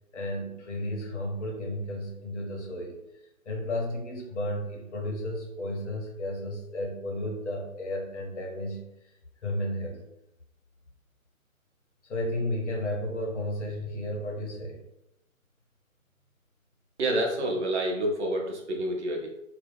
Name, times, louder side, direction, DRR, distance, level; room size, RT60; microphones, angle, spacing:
voice 1, 0.1-3.0 3.5-8.8 9.4-10.0 12.0-14.8, left 1 dB, 55° left, 0 dB, 0.9 m, -33 dB
voice 2, 17.0-19.3, right 1 dB, 55° right, 0 dB, 0.7 m, -28 dB
2.2 x 2.1 x 3.4 m, 0.85 s
figure-of-eight pair, 130°, 42 cm